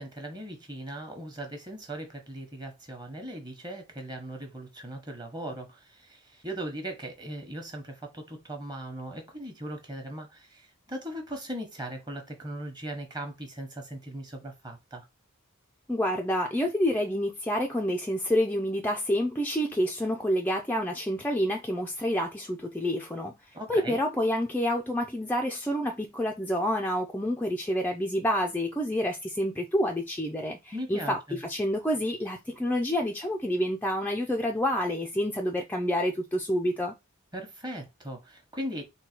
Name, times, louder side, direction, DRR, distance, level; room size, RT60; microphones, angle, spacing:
voice 1, 0.0-15.1 23.5-24.0 30.7-31.4 37.3-38.8, right 1 dB, 20° right, 1.0 m, -39 dB
voice 2, 15.9-23.4 23.7-36.9, equal, 10° left, 0.4 m, -28 dB
3.9 x 2.2 x 4.3 m
head